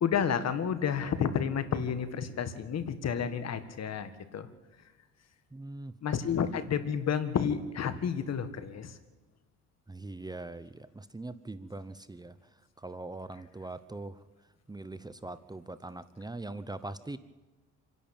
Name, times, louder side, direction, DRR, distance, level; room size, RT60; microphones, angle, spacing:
voice 1, 0.0-4.5 6.0-9.0, left 7 dB, 60° left, 11 dB, 1.8 m, -30 dB
voice 2, 5.5-5.9 9.9-12.4 12.8-14.2 14.7-17.2, right 2 dB, 15° right, 13 dB, 0.8 m, -42 dB
26.5 x 11.0 x 8.8 m, 1.1 s
cardioid pair, 90°, 30 cm